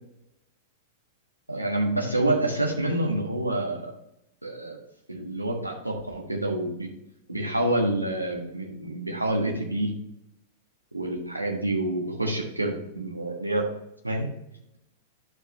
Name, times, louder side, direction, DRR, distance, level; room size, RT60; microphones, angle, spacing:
voice 1, 1.5-3.9 4.4-4.8 5.1-6.9 7.3-9.9 10.9-13.6 14.0-14.3, right 1 dB, 90° right, 1 dB, 1.4 m, -27 dB
11.0 x 4.7 x 3.0 m, 0.82 s
figure-of-eight pair, 95°, 0 cm